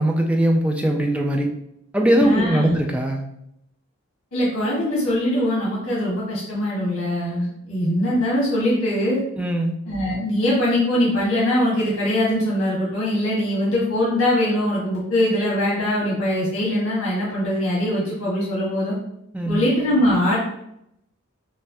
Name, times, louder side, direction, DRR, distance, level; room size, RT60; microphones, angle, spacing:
voice 1, 0.0-1.5 1.9-3.2 9.4-9.7 19.3-19.6, right 1 dB, 5° right, 2 dB, 0.3 m, -20 dB
voice 2, 2.2-2.7 4.3-9.2 9.9-18.9 19.5-20.4, left 1 dB, 85° left, -6 dB, 1.2 m, -22 dB
5.4 x 2.2 x 2.6 m, 0.78 s
head